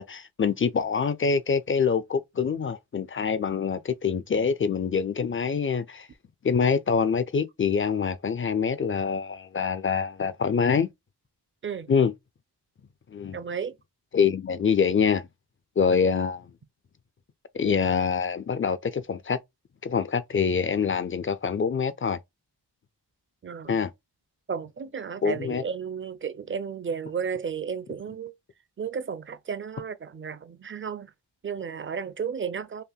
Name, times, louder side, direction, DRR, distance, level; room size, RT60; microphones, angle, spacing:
voice 1, 0.0-6.1 6.4-10.9 11.9-12.1 13.1-13.4 14.1-15.3 15.8-16.5 17.5-19.4 19.8-22.2 23.7-23.9 25.2-25.6, left 6 dB, 30° left, 0.4 m, -25 dB
voice 2, 13.3-13.7 23.4-23.8 24.5-28.3 28.8-31.1 31.4-32.8, right 6 dB, 30° right, 0.5 m, -33 dB
5.6 x 2.1 x 2.3 m
wide cardioid pair, 125°, 43 cm